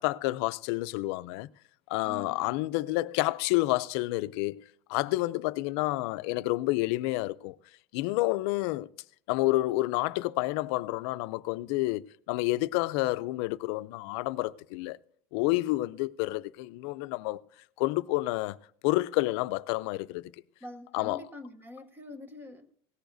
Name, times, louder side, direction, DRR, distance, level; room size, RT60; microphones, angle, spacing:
voice 1, 0.0-1.5 1.9-4.6 4.9-7.6 7.9-8.9 9.3-15.0 15.3-17.4 17.8-18.6 18.8-20.3 20.9-21.2, left 19 dB, 70° left, 0.5 m, -29 dB
voice 2, 2.0-2.5 20.6-22.7, left 2 dB, 15° right, 0.9 m, -45 dB
18.0 x 15.0 x 2.6 m
cardioid pair, 155°, 14 cm